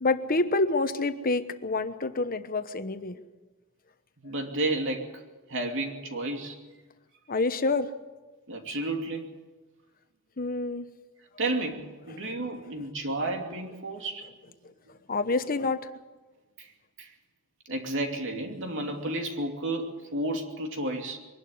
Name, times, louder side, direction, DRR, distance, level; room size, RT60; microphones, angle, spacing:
voice 1, 0.0-3.2 7.3-7.9 10.4-10.9 12.3-12.4 15.1-15.8, left 3 dB, 40° left, 10 dB, 1.1 m, -27 dB
voice 2, 4.2-5.2 5.5-6.6 8.5-9.3 11.4-14.5 16.6-16.7 17.0-17.1 17.7-21.2, right 2 dB, 60° right, 3 dB, 2.6 m, -32 dB
23.0 x 12.0 x 9.6 m, 1.2 s
head